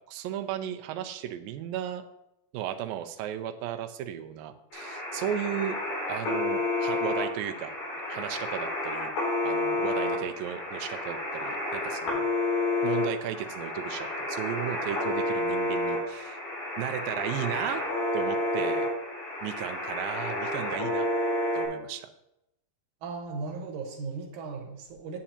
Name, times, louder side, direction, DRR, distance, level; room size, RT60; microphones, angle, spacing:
voice 1, 0.1-2.1 2.5-5.8 6.1-7.8 8.1-9.1 9.4-12.3 12.8-16.4 16.8-17.8 18.1-18.9 19.4-21.1 21.5-22.1, right 10 dB, 80° right, 7 dB, 2.3 m, -35 dB
sound 1, 4.7-21.7, left 2 dB, 85° left, 4.8 m, -30 dB
voice 2, 23.0-25.2, right 4 dB, 65° right, 2 dB, 2.4 m, -37 dB
10.0 x 8.7 x 2.9 m, 0.85 s
omnidirectional pair, 4.2 m